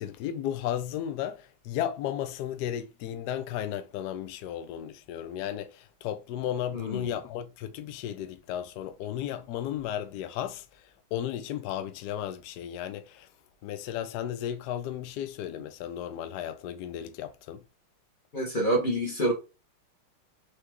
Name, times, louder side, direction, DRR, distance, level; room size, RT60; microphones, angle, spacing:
voice 1, 0.0-13.3 13.6-17.6, left 10 dB, 75° left, 0.9 m, -34 dB
voice 2, 6.7-7.1 18.3-19.3, right 1 dB, 30° left, 1.1 m, -27 dB
4.7 x 3.4 x 3.0 m
omnidirectional pair, 2.3 m